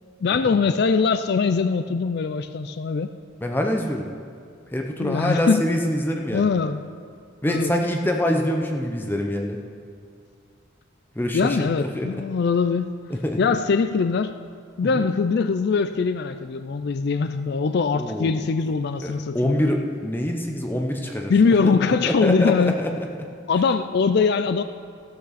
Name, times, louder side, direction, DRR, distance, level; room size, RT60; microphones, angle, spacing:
voice 1, 0.2-3.1 5.0-5.6 6.3-6.8 7.5-7.7 11.3-12.9 13.4-14.4 14.8-19.7 21.3-22.7 23.5-24.6, left 5 dB, 55° left, 10 dB, 0.4 m, -22 dB
voice 2, 3.4-4.1 4.7-6.5 7.4-9.6 11.1-12.2 13.1-13.4 14.8-15.0 17.9-18.4 19.0-21.3 21.6-21.8 22.0-23.3, left 1 dB, 10° left, 2 dB, 0.7 m, -25 dB
14.0 x 12.5 x 4.1 m, 2.3 s
head